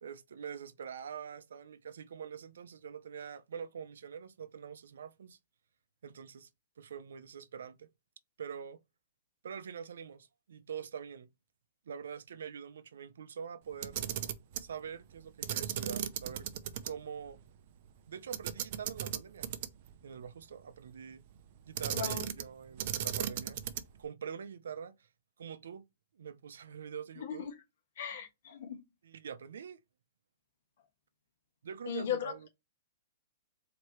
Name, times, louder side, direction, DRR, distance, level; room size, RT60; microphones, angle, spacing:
voice 1, 0.0-5.4 6.0-6.5 6.8-7.9 8.4-8.8 9.4-11.3 11.9-14.0 14.6-16.5 16.8-17.4 18.1-19.5 20.0-21.2 21.7-23.6 24.0-25.0 25.4-25.8 26.2-27.5 29.0-29.8 31.6-32.4, right 7 dB, 85° right, 0.6 m, -44 dB
Camera, 13.7-14.7 15.4-16.9 17.2-17.3 18.3-19.9 21.7-22.5 22.8-24.0, right 11 dB, 40° right, 0.5 m, -36 dB
voice 2, 21.9-22.2 27.2-27.5 28.0-28.8 31.9-32.3, left 8 dB, 50° left, 1.4 m, -37 dB
4.5 x 2.9 x 3.0 m
hypercardioid pair, 175°, 0 cm